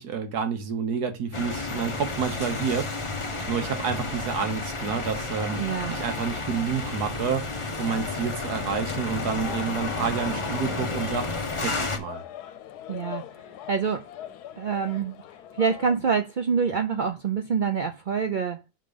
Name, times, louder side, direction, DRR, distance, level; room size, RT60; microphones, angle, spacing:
voice 1, 0.0-5.6 5.9-7.5 7.8-11.3 11.6-12.2, right 6 dB, 85° right, 1.7 m, -29 dB
sound 1, 1.3-12.0, left 3 dB, 25° left, 0.9 m, -31 dB
voice 2, 5.6-6.0 12.9-14.1 14.6-15.2 15.6-18.6, right 6 dB, 60° right, 0.5 m, -26 dB
sound 2, 8.1-16.0, left 11 dB, 85° left, 1.2 m, -42 dB
6.6 x 3.7 x 5.0 m
omnidirectional pair, 1.6 m